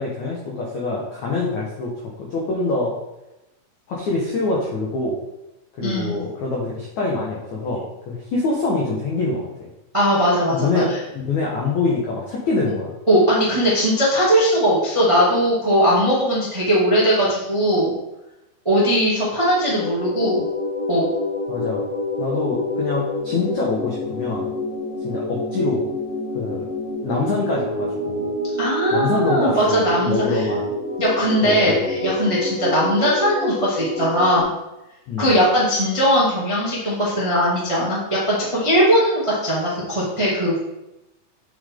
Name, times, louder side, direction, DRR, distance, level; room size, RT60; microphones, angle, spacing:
voice 1, 0.0-1.9 2.2-2.9 3.9-5.2 5.8-9.7 10.5-10.9 11.1-12.9 21.5-21.8 22.2-24.5 25.0-25.8 26.3-26.6 27.0-28.3 28.9-30.7 31.4-31.8 35.1-35.3, left 3 dB, 85° left, -4 dB, 1.6 m, -25 dB
voice 2, 5.8-6.2 9.9-10.8 13.1-17.9 18.6-20.4 20.9-21.1 28.6-30.4 31.0-34.5 35.2-40.5, equal, 30° right, -7 dB, 0.5 m, -19 dB
sound 1, 19.4-34.4, left 1 dB, 75° right, 0.8 m, -27 dB
8.8 x 5.6 x 3.8 m, 0.94 s
omnidirectional pair, 5.3 m